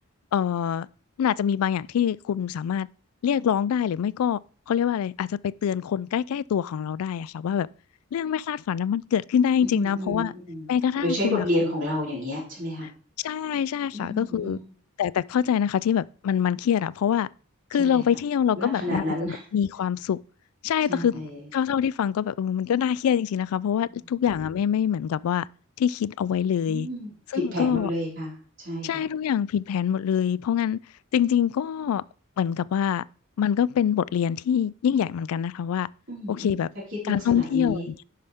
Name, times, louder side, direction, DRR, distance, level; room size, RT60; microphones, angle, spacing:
voice 1, 0.3-0.9 1.2-2.9 3.2-4.4 4.7-7.7 8.1-10.3 10.7-11.4 13.2-14.6 15.0-17.3 17.7-20.2 20.6-21.3 21.5-25.4 25.8-26.9 27.3-27.9 28.8-30.8 31.1-32.0 32.4-33.0 33.4-35.9 36.3-36.7 37.1-38.0, left 8 dB, 80° left, 0.3 m, -25 dB
voice 2, 9.6-10.7 11.0-12.9 13.9-14.6 17.8-18.0 18.6-19.4 20.9-21.5 23.8-23.9 26.7-28.3 28.6-29.1 36.1-36.6 37.0-37.9, left 1 dB, 55° right, 4.7 m, -30 dB
10.5 x 5.6 x 3.5 m
head